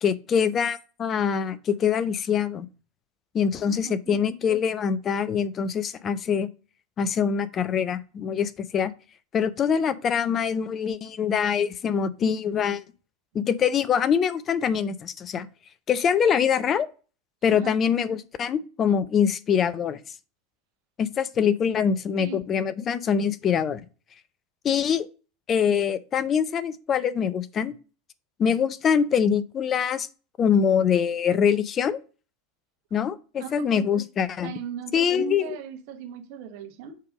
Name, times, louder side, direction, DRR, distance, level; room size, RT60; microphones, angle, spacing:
voice 1, 0.0-2.7 3.3-6.5 7.0-8.9 9.3-12.8 13.3-15.5 15.9-16.9 17.4-20.0 21.0-23.8 24.6-25.1 25.5-27.7 28.4-30.1 30.4-32.0 32.9-34.5 34.9-35.6, left 7 dB, 30° left, 0.5 m, -24 dB
voice 2, 3.7-4.2 17.5-17.8 22.2-22.4 33.4-33.9 34.4-37.0, right 7 dB, 50° right, 1.1 m, -38 dB
6.5 x 3.5 x 4.9 m
figure-of-eight pair, 80°, 0 cm